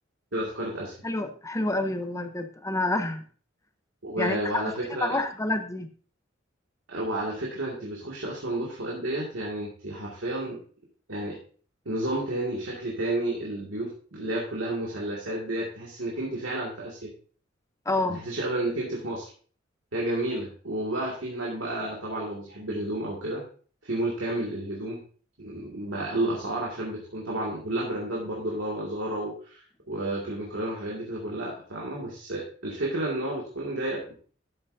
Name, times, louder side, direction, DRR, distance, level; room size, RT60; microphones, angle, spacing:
voice 1, 0.3-0.9 4.0-5.2 6.9-10.6 11.1-11.4 11.9-17.1 18.1-19.3 19.9-23.4 23.8-25.0 25.4-34.1, right 1 dB, 85° right, -3 dB, 2.2 m, -31 dB
voice 2, 1.0-3.2 4.2-5.9 17.9-18.2, left 2 dB, 15° left, 7 dB, 0.8 m, -28 dB
12.0 x 8.1 x 2.7 m, 0.42 s
head